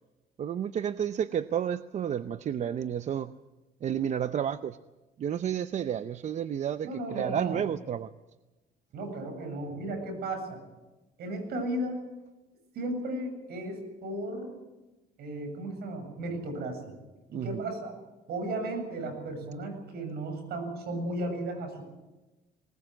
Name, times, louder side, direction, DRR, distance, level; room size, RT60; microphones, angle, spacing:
voice 1, 0.4-3.3 3.8-4.8 5.2-8.1 17.3-17.6, right 9 dB, 45° right, 12 dB, 0.7 m, -31 dB
voice 2, 6.8-7.6 8.9-10.6 11.2-12.0 12.7-14.5 15.2-17.0 17.3-17.9 18.3-21.8, right 1 dB, 70° right, 6 dB, 8.0 m, -35 dB
20.5 x 20.0 x 7.8 m, 1.1 s
cardioid pair, 110°, 17 cm